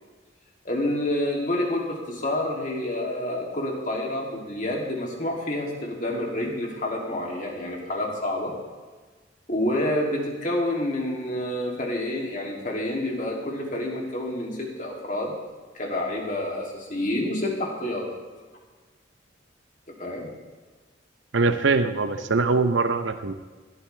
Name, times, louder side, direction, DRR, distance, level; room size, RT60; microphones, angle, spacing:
voice 1, 0.6-8.5 9.5-15.3 15.7-18.0 20.0-20.3, left 1 dB, 40° left, -1 dB, 2.8 m, -28 dB
voice 2, 21.3-23.3, right 3 dB, 80° right, 8 dB, 0.8 m, -22 dB
20.5 x 13.0 x 3.4 m, 1.4 s
head